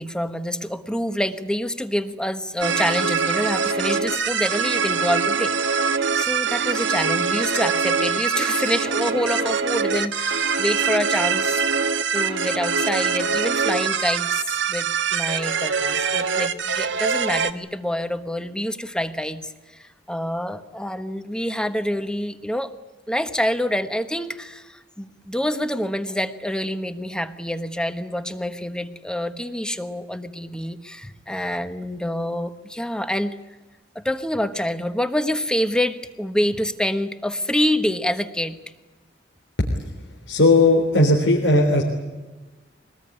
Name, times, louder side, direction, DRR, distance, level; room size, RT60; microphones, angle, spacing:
voice 1, 0.0-5.7 6.1-11.6 12.1-14.4 14.7-22.7 23.1-33.4 33.9-38.6, equal, 5° left, 10 dB, 1.2 m, -26 dB
sound 1, 2.6-17.5, right 5 dB, 90° right, 1.4 m, -23 dB
voice 2, 40.3-41.8, left 2 dB, 80° left, 0 dB, 3.6 m, -16 dB
24.5 x 20.0 x 9.7 m, 1.2 s
head